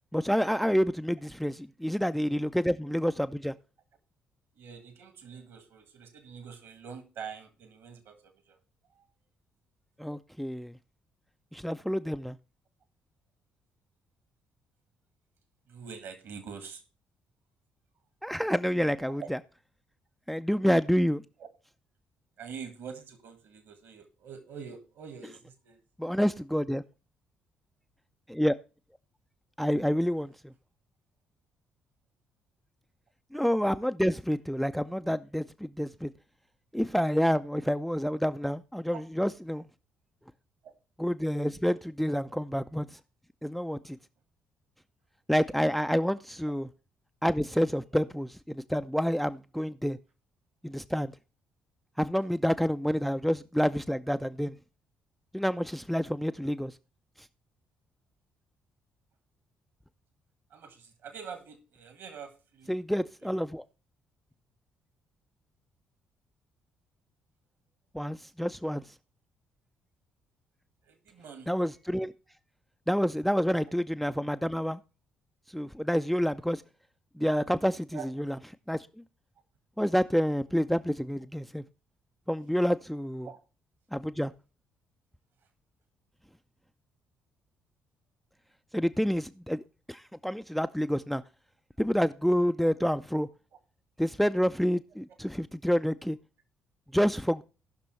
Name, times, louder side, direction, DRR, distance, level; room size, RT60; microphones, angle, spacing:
voice 1, 0.1-3.5 10.0-10.7 11.5-12.4 18.2-19.4 20.3-21.2 26.0-26.8 28.3-28.6 29.6-30.5 33.3-36.1 36.7-39.6 41.0-42.9 43.4-44.0 45.3-46.7 47.2-50.0 50.6-51.1 52.0-54.5 55.3-56.7 62.7-63.6 67.9-68.8 71.5-72.1 72.9-74.8 75.5-76.6 77.2-78.0 78.7-78.9 79.8-81.6 82.3-83.3 83.9-84.3 88.7-91.2 91.8-93.3 94.0-96.2 96.9-97.4, equal, ahead, 0.4 m, -28 dB
voice 2, 4.5-8.6 8.9-9.0 15.7-16.8 19.0-19.3 21.4-21.5 22.4-25.8 38.9-39.0 40.6-40.7 42.3-42.4 60.5-62.7 63.2-63.3 70.8-71.5 77.9-78.1 83.2-83.4 92.6-92.7, right 6 dB, 55° right, 1.7 m, -45 dB
17.5 x 6.0 x 3.2 m
figure-of-eight pair, 45°, 5 cm